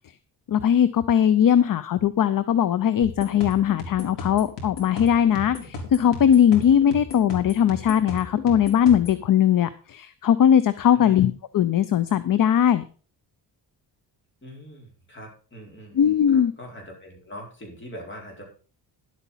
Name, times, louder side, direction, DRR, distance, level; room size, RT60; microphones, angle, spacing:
voice 1, 0.5-12.8 15.9-16.5, left 9 dB, 50° left, 15 dB, 0.7 m, -20 dB
sound 1, 3.0-9.2, left 3 dB, 85° left, 3.8 m, -36 dB
voice 2, 14.4-18.5, equal, 25° left, 0 dB, 4.6 m, -42 dB
11.0 x 8.3 x 5.6 m, 0.38 s
wide cardioid pair, 140°, 41 cm